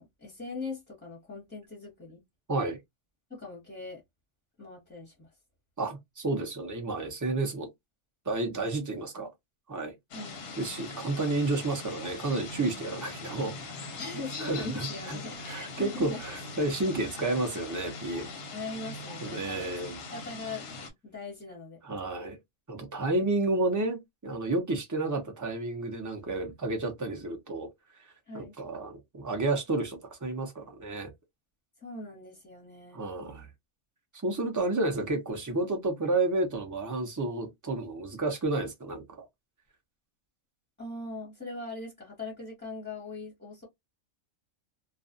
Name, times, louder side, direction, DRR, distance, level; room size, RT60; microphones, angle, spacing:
voice 1, 0.0-2.2 3.3-4.0 4.6-5.3 10.1-10.4 14.0-16.2 18.5-19.7 20.1-20.6 21.0-21.8 28.3-28.5 31.8-33.0 40.8-43.7, left 3 dB, 10° left, 0.8 m, -40 dB
voice 2, 2.5-2.8 5.8-7.7 8.3-9.3 9.7-9.9 10.6-13.9 14.4-15.2 15.4-18.3 19.2-20.0 21.8-22.4 22.7-27.7 28.0-31.1 32.9-33.5 34.2-39.3, right 2 dB, 30° right, 0.3 m, -31 dB
sound 1, 10.1-20.9, left 3 dB, 55° left, 0.8 m, -41 dB
2.4 x 2.3 x 2.5 m
omnidirectional pair, 1.4 m